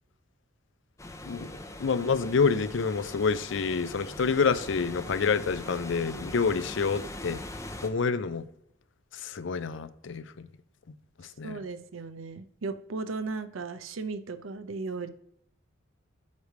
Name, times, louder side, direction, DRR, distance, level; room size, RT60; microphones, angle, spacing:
Wind through trees (loop), 1.0-7.9, left 1 dB, 15° left, 0.7 m, -41 dB
voice 1, 1.8-7.4 7.8-8.4 9.1-10.2 11.2-11.6, left 5 dB, 65° left, 0.5 m, -27 dB
voice 2, 11.4-15.1, right 4 dB, 80° right, 0.6 m, -36 dB
8.1 x 3.3 x 6.5 m
head